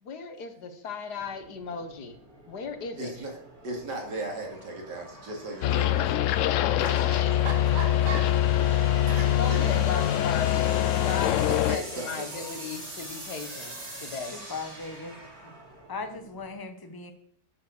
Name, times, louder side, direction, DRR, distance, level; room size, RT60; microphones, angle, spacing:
voice 1, 0.0-2.2 2.5-3.1 7.0-7.2 9.3-14.3, left 5 dB, 65° left, 8 dB, 1.8 m, -36 dB
sound 1, 1.1-16.6, right 1 dB, 55° right, 3.5 m, -44 dB
voice 2, 3.0-3.4 3.6-8.3 8.7-9.6 11.2-12.4, right 2 dB, 75° right, 1 dB, 3.1 m, -38 dB
sound 2, 5.6-11.8, left 11 dB, 90° left, 0.6 m, -24 dB
voice 3, 14.3-15.2 15.4-15.5 15.9-17.1, left 4 dB, 15° left, 6 dB, 0.9 m, -38 dB
9.4 x 7.5 x 6.6 m, 0.66 s
omnidirectional pair, 1.9 m